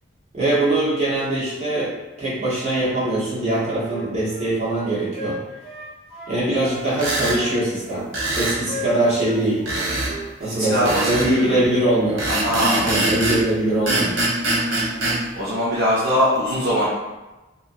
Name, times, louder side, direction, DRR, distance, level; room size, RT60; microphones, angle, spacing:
voice 1, 0.3-1.9 2.2-5.4 6.3-8.1 8.3-9.6 10.4-12.3 12.8-14.2, right 1 dB, 35° right, -10 dB, 1.1 m, -22 dB
Wind instrument woodwind instrument, 3.4-6.9 7.2-10.3 10.6-10.8, right 1 dB, 25° left, 0.9 m, -36 dB
sound 1, 6.9-7.4 8.1-8.6 9.7-10.1 10.9-11.3 12.2-13.4 13.9-15.2, right 1 dB, 80° right, 0.8 m, -22 dB
voice 2, 10.4-11.6 12.3-12.8 15.3-16.9, equal, 55° right, -9 dB, 0.6 m, -22 dB
2.8 x 2.2 x 2.5 m, 1.1 s
head